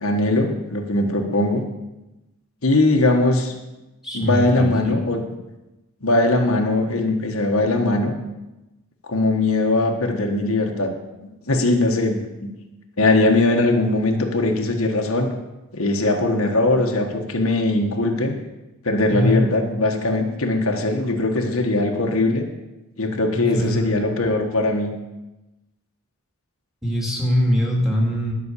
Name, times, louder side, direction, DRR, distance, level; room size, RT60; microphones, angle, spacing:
voice 1, 0.0-1.6 2.6-3.6 4.1-5.2 6.0-8.2 9.1-10.9 11.5-12.5 13.0-15.3 15.7-18.3 18.8-22.4 23.0-24.9, left 2 dB, 75° left, 2 dB, 1.4 m, -20 dB
voice 2, 4.0-5.0 19.1-19.4 23.3-24.0 26.8-28.3, equal, ahead, -2 dB, 2.2 m, -22 dB
11.0 x 6.2 x 8.3 m, 1.0 s
head